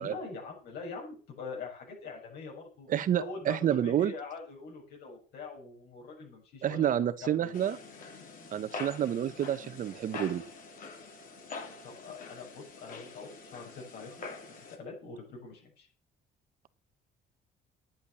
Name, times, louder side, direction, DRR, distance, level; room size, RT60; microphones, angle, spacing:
voice 1, 0.0-2.9 3.2-7.5 11.8-15.9, left 4 dB, 70° left, 0 dB, 6.9 m, -44 dB
voice 2, 2.9-4.1 6.6-7.8 8.5-10.4, right 10 dB, 50° right, 12 dB, 1.2 m, -29 dB
sound 1, 7.5-14.8, left 4 dB, 55° left, 3.3 m, -45 dB
10.5 x 9.5 x 7.1 m, 0.38 s
cardioid pair, 110°, 17 cm